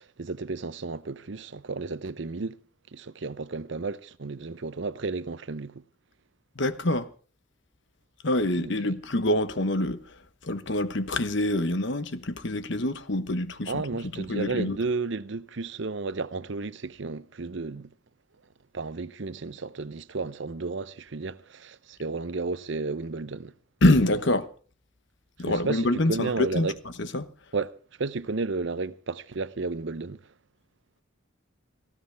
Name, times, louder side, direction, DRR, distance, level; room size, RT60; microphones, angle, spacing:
voice 1, 0.0-2.6 2.9-5.8 8.6-8.9 13.7-17.9 18.7-23.5 25.5-26.8 27.5-30.3, right 3 dB, 60° right, 0.7 m, -33 dB
voice 2, 6.6-7.1 8.2-13.8 14.1-14.8 23.8-24.5 25.4-26.7 27.0-27.3, left 1 dB, 60° left, 1.1 m, -26 dB
18.5 x 16.0 x 3.5 m
head